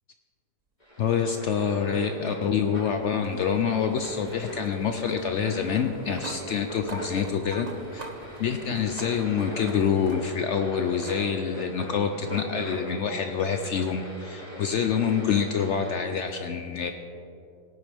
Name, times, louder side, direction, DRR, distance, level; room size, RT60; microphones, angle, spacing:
sound 1, 0.8-15.9, equal, 25° left, 2.4 m, -40 dB
voice 1, 1.0-8.1 8.4-16.9, left 7 dB, 75° left, 6 dB, 0.6 m, -27 dB
sound 2, 1.7-10.6 11.0-11.2 12.5-12.6 15.5-15.6, right 3 dB, 50° right, 0.5 m, -45 dB
17.5 x 9.2 x 3.4 m, 2.8 s
omnidirectional pair, 1.8 m